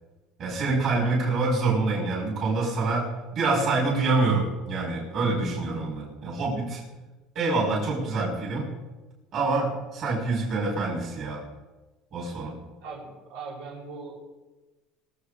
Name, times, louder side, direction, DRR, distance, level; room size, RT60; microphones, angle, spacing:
voice 1, 0.4-3.1 3.3-6.8 7.4-8.7 9.3-11.4 12.1-12.6, right 3 dB, 40° right, -4 dB, 5.3 m, -26 dB
voice 2, 12.8-14.2, right 4 dB, 80° right, -4 dB, 6.3 m, -39 dB
23.0 x 8.3 x 5.0 m, 1.2 s
cardioid pair, 150°, 0 cm